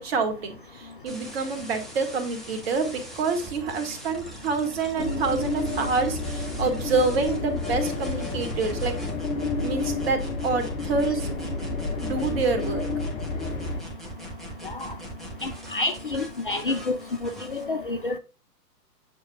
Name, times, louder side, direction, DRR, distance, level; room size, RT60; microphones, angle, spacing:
voice 1, 0.0-9.0 9.6-11.3 12.0-12.9, right 4 dB, 40° right, 1.8 m, -27 dB
sound 1, 1.1-17.6, right 1 dB, ahead, 1.2 m, -41 dB
sound 2, 5.0-13.8, left 3 dB, 55° left, 1.5 m, -30 dB
voice 2, 15.4-17.0 17.5-18.2, left 2 dB, 35° left, 0.4 m, -28 dB
8.3 x 6.3 x 2.3 m
figure-of-eight pair, 120°, 49 cm